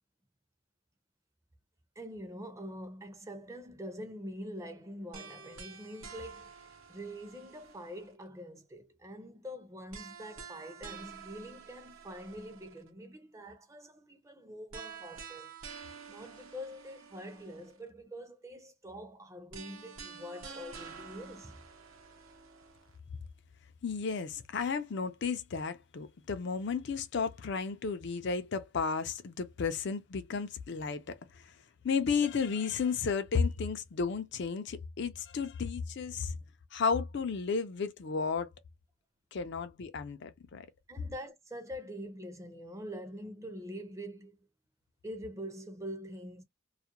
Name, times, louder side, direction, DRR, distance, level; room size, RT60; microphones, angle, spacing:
voice 1, 2.0-15.5 16.1-21.6 40.9-44.4 45.0-46.4, equal, 15° right, 0.5 m, -45 dB
sound 1, 5.1-8.3 9.9-12.9 14.7-17.9 19.5-23.0, right 6 dB, 75° right, 0.7 m, -49 dB
voice 2, 23.8-31.5 31.8-36.4 36.7-38.5 39.3-40.7, left 5 dB, 55° left, 0.4 m, -33 dB
2.4 x 2.1 x 2.8 m
head